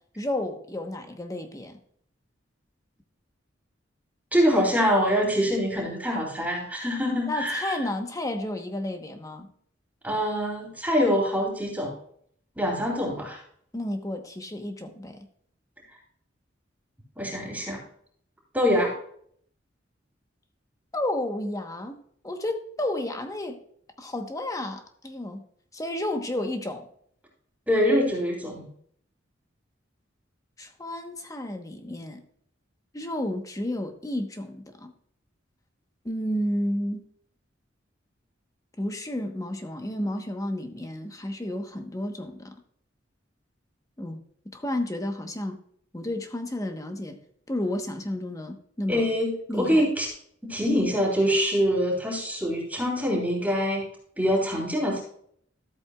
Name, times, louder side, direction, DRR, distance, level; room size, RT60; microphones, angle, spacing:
voice 1, 0.2-1.8 7.3-9.5 13.7-15.2 20.9-22.0 22.2-23.6 24.0-25.4 25.7-26.9 30.6-32.2 32.9-34.9 36.0-37.1 38.8-42.5 44.0-44.2 44.4-45.6 45.9-47.2 47.5-49.1 49.5-49.9, left 1 dB, 20° left, 6 dB, 1.1 m, -31 dB
voice 2, 4.3-7.7 10.0-11.9 12.6-13.4 17.2-17.8 18.5-18.9 27.7-28.7 48.9-50.1 50.4-53.9 54.2-55.0, equal, 10° right, -3 dB, 3.1 m, -24 dB
14.0 x 7.9 x 2.4 m, 0.63 s
head